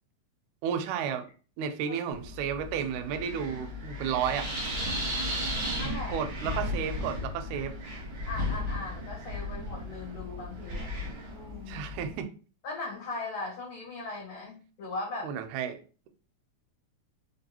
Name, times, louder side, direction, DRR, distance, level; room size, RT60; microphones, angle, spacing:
voice 1, 0.6-1.3 1.6-4.5 6.1-7.7 11.7-12.3 15.2-15.8, right 8 dB, 85° right, 8 dB, 2.0 m, -32 dB
Wind, 2.1-12.2, left 1 dB, 65° right, 1.2 m, -35 dB
voice 2, 5.3-6.2 6.5-6.6 8.3-10.9 11.3-11.8 12.6-15.3, left 3 dB, 80° left, -1 dB, 1.2 m, -39 dB
4.6 x 2.6 x 2.8 m, 0.37 s
omnidirectional pair, 3.4 m